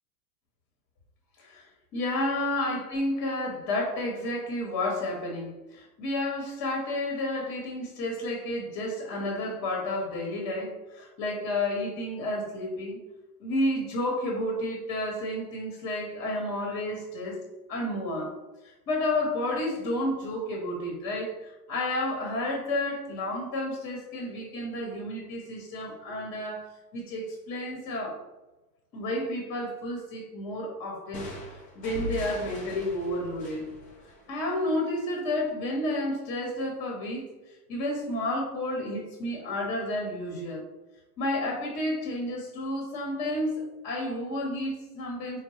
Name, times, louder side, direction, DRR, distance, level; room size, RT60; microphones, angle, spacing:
voice 1, 1.9-13.0 13.4-17.4 17.7-18.4 18.9-26.7 26.9-28.2 28.9-31.3 31.7-33.7 34.3-37.3 37.7-40.6 41.2-45.4, left 1 dB, 35° left, 0 dB, 1.0 m, -31 dB
sound 1, 31.1-34.8, left 2 dB, 15° left, 0.4 m, -40 dB
4.4 x 2.1 x 3.1 m, 1.1 s
hypercardioid pair, 100°, 50 cm